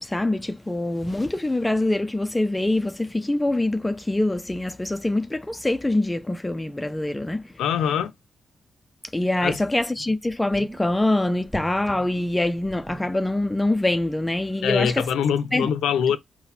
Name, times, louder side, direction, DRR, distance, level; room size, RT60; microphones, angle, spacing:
voice 1, 0.0-7.4 9.1-15.1 15.5-15.7, left 1 dB, 15° left, 0.4 m, -24 dB
voice 2, 7.6-8.1 9.4-9.6 14.6-16.2, left 8 dB, 85° left, 0.5 m, -23 dB
sound 1, 9.2-9.3 9.8-9.9 10.2-11.0 11.5-13.7 14.0-14.1, equal, 10° right, 1.2 m, -42 dB
4.0 x 2.1 x 4.1 m
cardioid pair, 65°, 0 cm